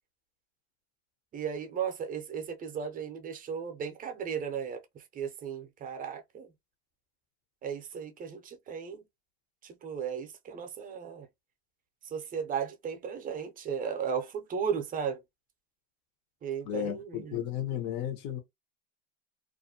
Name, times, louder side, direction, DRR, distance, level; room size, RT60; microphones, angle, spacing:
voice 1, 1.3-6.5 7.6-9.0 9.6-11.3 12.0-15.2 16.4-17.5, right 7 dB, 25° right, 0.5 m, -35 dB
voice 2, 16.6-18.4, left 10 dB, 60° left, 0.8 m, -34 dB
2.4 x 2.1 x 2.6 m
supercardioid pair, 130°, 34 cm